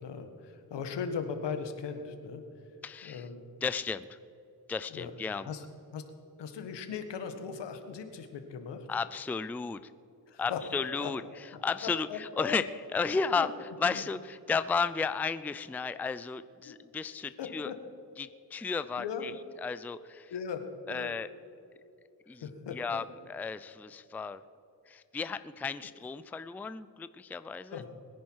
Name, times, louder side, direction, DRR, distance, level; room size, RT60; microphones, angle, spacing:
voice 1, 0.0-2.4 3.0-3.4 4.9-5.1 5.4-5.6 5.9-6.1 6.4-8.9 10.3-10.6 11.0-11.1 11.8-12.6 13.3-13.5 13.9-14.0 16.6-16.7 17.4-17.7 19.0-19.3 20.3-21.1 22.4-23.0 27.7-27.9, left 6 dB, 85° left, 7 dB, 1.6 m, -38 dB
voice 2, 2.8-3.3 3.6-4.2 4.7-5.5 8.9-9.9 10.4-17.7 18.2-19.3 19.6-20.3 20.9-21.3 22.3-24.4 24.9-27.9, left 5 dB, 5° left, 14 dB, 0.3 m, -34 dB
21.5 x 10.5 x 4.7 m, 2.8 s
cardioid pair, 95°, 41 cm